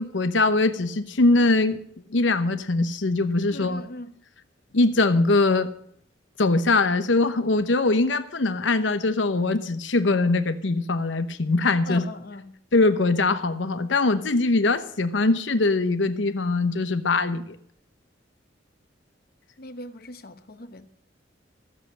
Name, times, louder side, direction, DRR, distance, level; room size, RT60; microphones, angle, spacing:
voice 1, 0.0-1.8 2.1-3.8 4.7-5.7 6.4-12.0 12.7-17.6, left 3 dB, 85° left, 0.9 m, -22 dB
voice 2, 3.5-4.2 11.8-12.6 19.6-20.9, left 2 dB, 55° left, 1.0 m, -39 dB
15.0 x 7.6 x 7.9 m
head